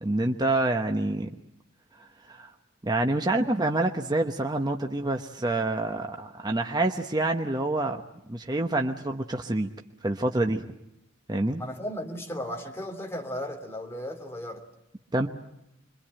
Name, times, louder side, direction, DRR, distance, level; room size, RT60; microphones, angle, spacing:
voice 1, 0.0-1.3 2.0-2.5 2.8-8.0 8.3-9.7 10.0-10.7 11.3-11.6 15.1-15.3, right 2 dB, 20° right, 4 dB, 1.0 m, -27 dB
voice 2, 11.6-14.6, left 1 dB, 15° left, 3 dB, 3.1 m, -35 dB
26.5 x 23.5 x 8.9 m, 0.85 s
head